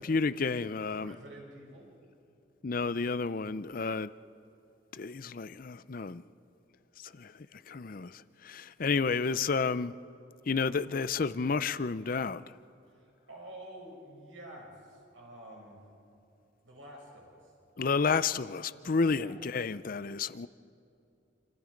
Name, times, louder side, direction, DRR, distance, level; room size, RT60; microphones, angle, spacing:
voice 1, 0.0-1.1 2.6-4.1 4.9-6.2 7.0-7.3 7.7-9.9 10.5-12.4 17.8-20.5, left 4 dB, 45° left, 0.5 m, -31 dB
voice 2, 0.9-1.9 12.9-15.8 16.6-17.5 19.1-19.4, right 1 dB, 75° right, 7.4 m, -49 dB
28.0 x 27.5 x 5.2 m
head